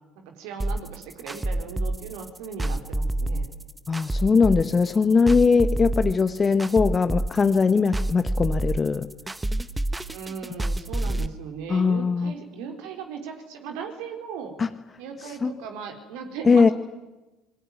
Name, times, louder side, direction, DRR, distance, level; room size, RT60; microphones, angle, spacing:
voice 1, 0.2-3.5 10.1-14.5 15.0-16.7, right 6 dB, 65° right, 5 dB, 3.6 m, -37 dB
sound 1, 0.6-11.3, right 1 dB, 15° right, 1.3 m, -28 dB
voice 2, 3.9-9.1 11.7-12.3 14.6-14.7 15.4-15.5 16.5-16.7, left 5 dB, 30° left, 11 dB, 1.1 m, -20 dB
27.5 x 21.5 x 9.4 m, 1.1 s
figure-of-eight pair, 60°, 0 cm